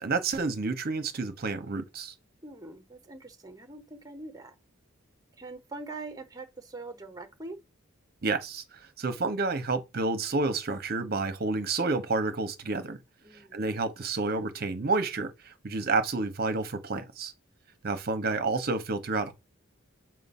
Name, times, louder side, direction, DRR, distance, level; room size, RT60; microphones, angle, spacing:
voice 1, 0.0-2.1 8.2-8.6 9.0-13.0 13.5-17.3 17.8-19.3, right 3 dB, 50° right, 0.8 m, -29 dB
voice 2, 2.4-4.5 5.4-7.6 13.2-13.6, right 2 dB, 20° right, 0.9 m, -43 dB
7.6 x 2.6 x 5.4 m
head